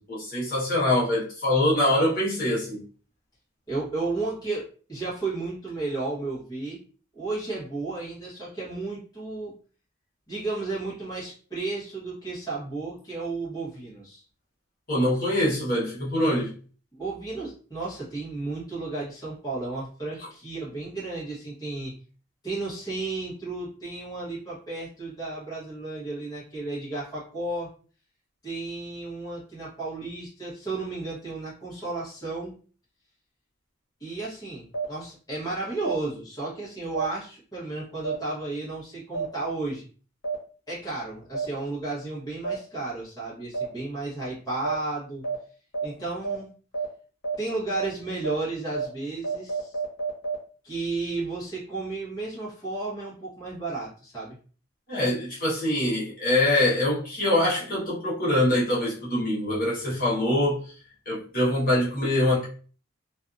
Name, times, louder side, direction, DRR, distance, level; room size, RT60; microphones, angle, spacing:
voice 1, 0.1-2.8 14.9-16.5 54.9-60.6 61.1-62.4, left 1 dB, 45° left, 1.1 m, -24 dB
voice 2, 3.7-6.8 7.1-9.6 10.3-14.2 17.0-21.9 22.4-27.7 28.4-32.6 34.0-39.9 40.7-45.3 45.8-46.5 47.4-49.8 50.6-54.4, right 3 dB, 20° left, 1.0 m, -33 dB
sound 1, 34.7-34.8 35.8-35.9 36.9-37.0 38.0-38.1 39.1-39.2 40.2-40.3 41.3-41.4 42.4-42.5 43.5-43.6 44.6-44.7 45.2-45.3 45.7-45.8 46.2-46.3 46.7-46.8 47.2-47.3 47.7-47.8 48.2-48.3 48.7-48.8 49.2-50.3, right 5 dB, 65° left, 1.1 m, -28 dB
2.6 x 2.4 x 2.5 m
head